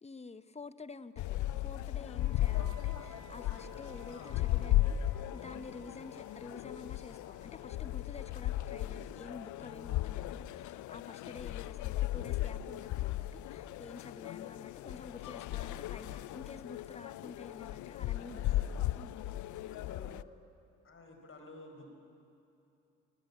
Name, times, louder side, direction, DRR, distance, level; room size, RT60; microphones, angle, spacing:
voice 1, 0.0-18.4 18.9-19.2, left 4 dB, 20° left, 12 dB, 0.9 m, -49 dB
sound 1, 1.2-20.2, left 14 dB, 80° left, 0.5 m, -36 dB
Wind instrument woodwind instrument, 2.2-10.1, right 10 dB, 70° right, 2.5 m, -61 dB
voice 2, 4.1-4.5 15.9-16.3 18.1-18.7 19.7-20.1 20.8-21.9, left 2 dB, 45° left, 3 dB, 5.0 m, -52 dB
22.5 x 20.0 x 8.6 m, 2.7 s
cardioid pair, 90°, 30 cm